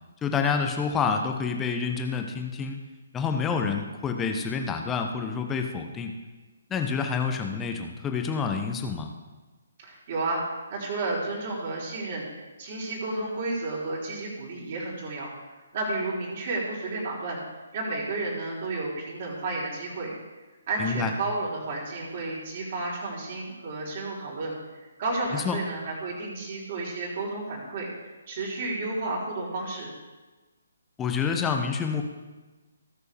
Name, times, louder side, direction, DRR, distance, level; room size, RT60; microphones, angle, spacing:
voice 1, 0.2-2.8 3.1-6.2 6.7-9.1 20.8-21.1 25.3-25.6 31.0-32.0, left 5 dB, 10° left, 4 dB, 1.0 m, -28 dB
voice 2, 9.8-15.3 15.7-17.4 17.7-20.1 20.7-27.9 28.3-29.9, right 2 dB, 40° right, -5 dB, 3.9 m, -32 dB
17.5 x 6.7 x 3.5 m, 1.2 s
figure-of-eight pair, 135°, 0 cm